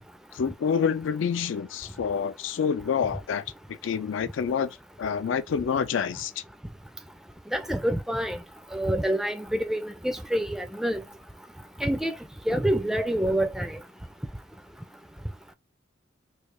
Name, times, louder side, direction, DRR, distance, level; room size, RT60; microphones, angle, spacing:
voice 1, 0.3-6.4, left 6 dB, 75° left, 0.4 m, -28 dB
voice 2, 7.5-8.4 8.7-11.0 11.8-12.2 12.5-13.8, right 1 dB, ahead, 0.3 m, -27 dB
3.2 x 2.3 x 3.3 m
head